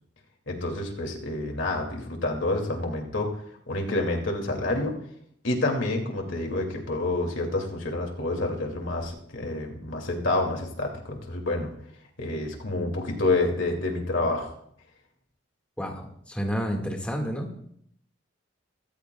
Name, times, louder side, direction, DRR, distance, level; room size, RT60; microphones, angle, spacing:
voice 1, 0.5-3.3 3.7-4.9 5.4-11.7 12.2-14.5, left 2 dB, 75° left, 2 dB, 2.5 m, -28 dB
voice 2, 15.8-17.5, equal, 5° left, 1 dB, 1.9 m, -30 dB
22.5 x 14.5 x 2.3 m, 0.69 s
head